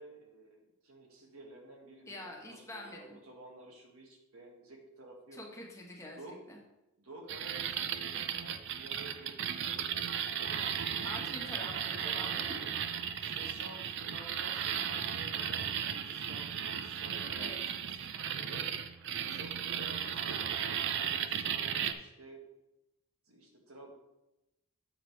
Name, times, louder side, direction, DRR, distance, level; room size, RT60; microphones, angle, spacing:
voice 1, 0.0-5.4 6.1-6.4 7.0-9.4 9.6-11.3 12.0-12.2 13.2-17.5 17.8-18.0 18.2-18.7 19.3-22.4 23.3-23.9, right 2 dB, 90° right, 1 dB, 1.6 m, -52 dB
voice 2, 2.1-3.2 5.3-6.2 6.5-6.6 11.0-12.7 17.4-17.6, left 1 dB, 15° left, -2 dB, 1.2 m, -46 dB
sound 1, 7.3-21.9, right 8 dB, 55° right, 0.5 m, -35 dB
7.8 x 5.0 x 4.6 m, 0.96 s
head